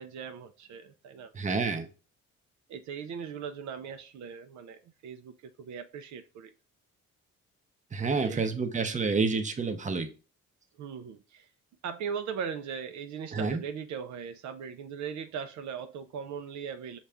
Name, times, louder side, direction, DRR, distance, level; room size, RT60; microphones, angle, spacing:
voice 1, 0.0-1.3 2.7-6.5 8.1-8.5 10.8-11.5 11.8-17.0, right 7 dB, 70° right, 0.5 m, -39 dB
voice 2, 1.3-1.9 7.9-10.1 13.3-13.6, right 4 dB, 25° right, 0.7 m, -29 dB
5.5 x 2.4 x 3.4 m
cardioid pair, 90°, 30 cm